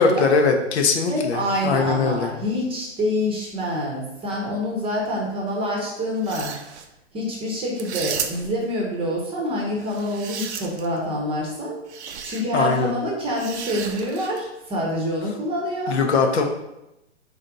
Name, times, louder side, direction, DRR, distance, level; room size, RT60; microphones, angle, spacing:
voice 1, 0.0-2.3 12.5-12.9 15.9-16.4, left 4 dB, 60° left, 4 dB, 0.8 m, -20 dB
voice 2, 1.1-6.5 7.1-16.0, equal, 15° right, -2 dB, 0.9 m, -26 dB
sound 1, 6.1-6.9 7.8-8.6 9.8-11.0 11.9-12.4 13.4-14.5, right 7 dB, 60° right, 0.6 m, -33 dB
4.0 x 3.4 x 3.8 m, 0.89 s
hypercardioid pair, 125°, 37 cm